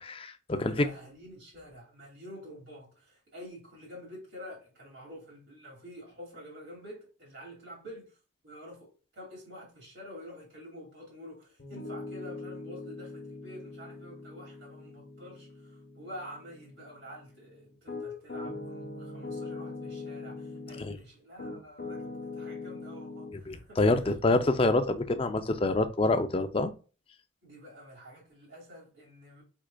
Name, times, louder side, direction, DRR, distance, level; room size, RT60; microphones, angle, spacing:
voice 1, 0.0-0.9 20.8-21.0 23.5-26.7, left 2 dB, 25° left, 0.4 m, -26 dB
voice 2, 0.5-8.2 8.4-24.1 27.4-29.4, equal, 65° right, 2.3 m, -48 dB
Piano, 11.6-21.0 21.4-23.4, left 3 dB, 50° left, 0.9 m, -42 dB
4.9 x 4.6 x 2.2 m
head